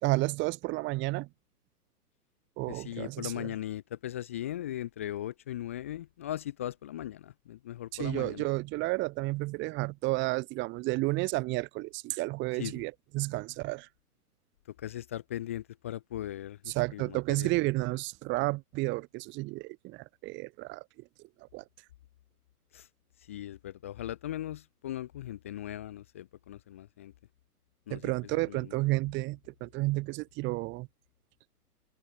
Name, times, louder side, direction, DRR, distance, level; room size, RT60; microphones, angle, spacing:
voice 1, 0.0-1.3 2.6-3.5 7.9-13.9 16.7-20.8 21.4-21.6 27.9-30.9, right 22 dB, 25° right, 2.5 m, -31 dB
voice 2, 2.7-8.5 12.6-12.8 14.8-17.5 22.7-22.9 23.2-27.1 27.9-28.7, left 12 dB, 10° left, 0.4 m, -39 dB
figure-of-eight pair, 115°, 46 cm